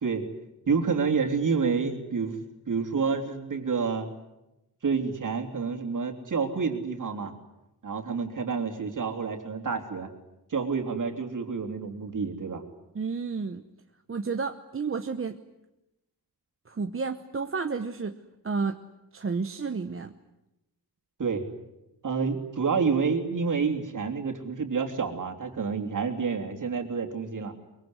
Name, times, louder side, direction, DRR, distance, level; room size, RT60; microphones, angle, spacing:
voice 1, 0.7-2.4 2.7-4.1 4.8-7.3 7.8-10.1 10.5-12.6 21.2-21.4 22.0-27.5, right 5 dB, 50° right, 4 dB, 3.4 m, -28 dB
voice 2, 12.9-13.6 14.1-15.4 16.7-18.2 18.4-18.8 19.1-20.1, right 4 dB, 35° right, 7 dB, 1.0 m, -31 dB
23.5 x 23.0 x 9.8 m, 0.92 s
wide cardioid pair, 125°, 40 cm